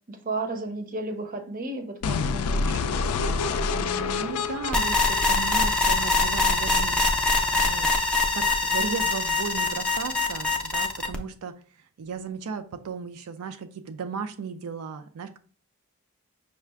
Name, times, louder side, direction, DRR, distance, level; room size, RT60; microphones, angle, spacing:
voice 1, 0.1-2.8, right 2 dB, 40° right, 7 dB, 0.6 m, -33 dB
sound 1, 2.0-6.0, left 4 dB, 85° left, 0.4 m, -28 dB
voice 2, 3.7-7.9 8.3-15.4, right 6 dB, 80° right, 8 dB, 0.4 m, -36 dB
sound 2, 4.7-11.2, left 3 dB, 5° left, 0.4 m, -23 dB
5.5 x 2.4 x 3.3 m, 0.41 s
head